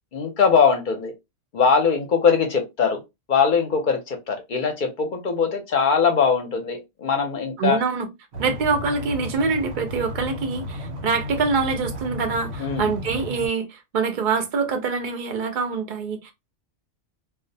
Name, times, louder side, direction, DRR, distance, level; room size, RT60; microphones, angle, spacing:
voice 1, 0.1-1.1 1.5-3.0 3.3-7.8 12.6-12.9, left 6 dB, 50° left, 0.7 m, -21 dB
voice 2, 7.6-8.1 8.4-16.3, right 5 dB, 55° right, 0.6 m, -25 dB
sound 1, 8.3-13.5, left 1 dB, 90° right, 1.0 m, -33 dB
2.3 x 2.1 x 2.6 m
omnidirectional pair, 1.2 m